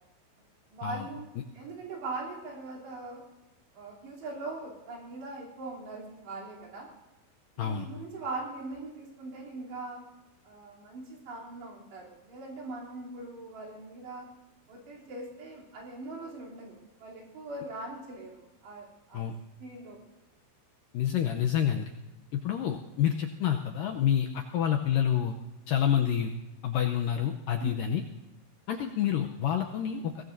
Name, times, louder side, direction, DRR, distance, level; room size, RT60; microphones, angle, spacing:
voice 1, 0.7-1.3 1.5-3.2 3.7-6.9 7.6-10.0 10.5-14.3 14.7-19.3 19.6-20.0 27.6-27.8, right 3 dB, 80° right, -3 dB, 5.6 m, -41 dB
voice 2, 20.9-21.9 22.3-25.4 25.7-26.3 26.6-28.0 28.7-30.1, left 9 dB, 80° left, 3 dB, 2.0 m, -28 dB
23.0 x 18.0 x 2.7 m, 1.0 s
omnidirectional pair, 4.8 m